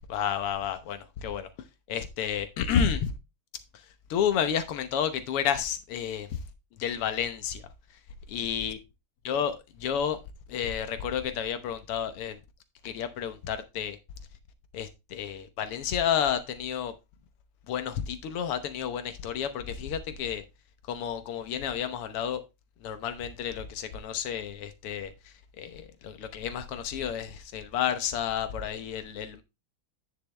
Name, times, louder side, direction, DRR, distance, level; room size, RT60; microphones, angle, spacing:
voice 1, 0.1-1.5 1.9-3.1 3.7-6.4 6.8-7.6 8.3-8.8 9.3-10.2 10.5-12.4 12.8-14.0 14.7-16.9 17.7-20.4 20.9-22.4 22.8-29.4, left 8 dB, 90° left, 2.0 m, -31 dB
10.0 x 5.9 x 3.3 m
omnidirectional pair, 2.4 m